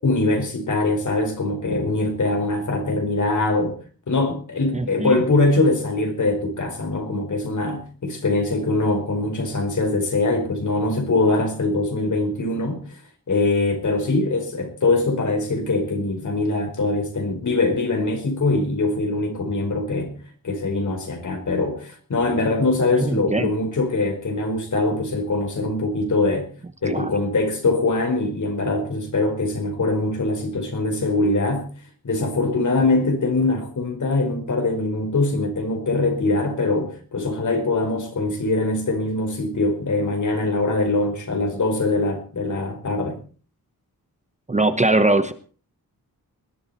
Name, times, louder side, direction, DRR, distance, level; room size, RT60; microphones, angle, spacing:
voice 1, 0.0-3.8 4.1-13.0 13.3-20.2 20.4-26.5 26.8-31.7 32.0-43.2, left 2 dB, 55° left, 4.9 m, -22 dB
voice 2, 4.7-5.2 23.0-23.5 26.8-27.1 44.5-45.3, right 2 dB, 20° right, 0.9 m, -21 dB
20.5 x 12.5 x 4.4 m
wide cardioid pair, 160°, 35 cm